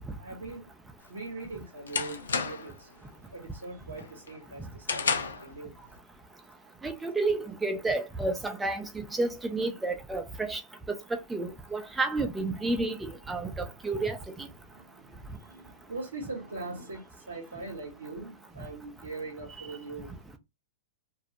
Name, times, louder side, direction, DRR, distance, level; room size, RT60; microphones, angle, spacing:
voice 1, 0.2-0.7 1.1-2.9 3.3-5.7 14.7-20.4, right 3 dB, 90° right, 0.7 m, -41 dB
sound 1, 1.0-2.8 3.2-3.6 4.0-5.5, left 5 dB, 85° left, 0.5 m, -32 dB
voice 2, 6.8-8.8 9.2-10.6 11.3-13.0 13.3-14.2, right 2 dB, 10° right, 0.5 m, -30 dB
2.3 x 2.0 x 2.7 m
hypercardioid pair, 110°, 0 cm